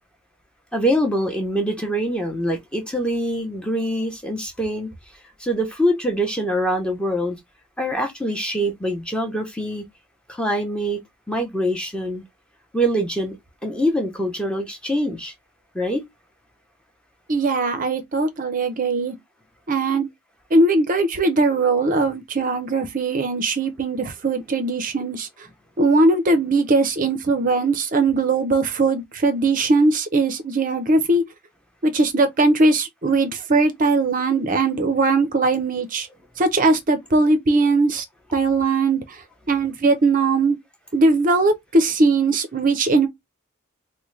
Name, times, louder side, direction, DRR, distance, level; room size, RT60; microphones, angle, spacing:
voice 1, 0.7-4.9 5.4-7.4 7.8-9.8 10.3-11.0 11.3-12.2 12.7-13.4 13.6-15.3 15.7-16.0, equal, 5° left, 0.7 m, -24 dB
voice 2, 17.3-19.1 19.7-20.1 20.5-25.3 25.8-31.2 31.8-36.1 36.4-38.0 38.3-39.0 39.5-40.6 40.9-43.1, right 3 dB, 35° right, 0.5 m, -20 dB
3.6 x 2.1 x 3.1 m
head